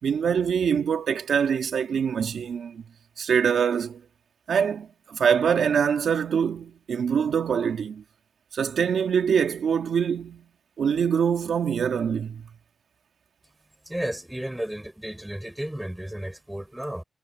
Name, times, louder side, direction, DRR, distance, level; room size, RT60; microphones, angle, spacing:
voice 1, 0.0-2.8 3.2-4.0 4.5-8.0 8.5-10.5 10.8-12.4, right 7 dB, 80° right, 2.8 m, -24 dB
voice 2, 13.8-17.0, right 1 dB, 10° right, 5.0 m, -33 dB
cardioid pair, 65°, 0 cm